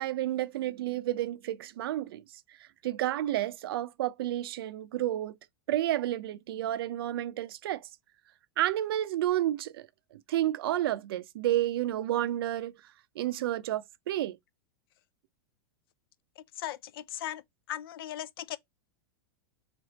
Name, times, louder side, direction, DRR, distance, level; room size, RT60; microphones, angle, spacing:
voice 1, 0.0-2.2 2.8-5.4 5.7-7.9 8.6-9.9 10.1-12.7 13.2-14.4, right 13 dB, 75° right, 0.4 m, -30 dB
voice 2, 16.4-17.4 17.7-18.6, left 12 dB, 70° left, 0.4 m, -38 dB
3.4 x 2.9 x 3.9 m
hypercardioid pair, 115°, 13 cm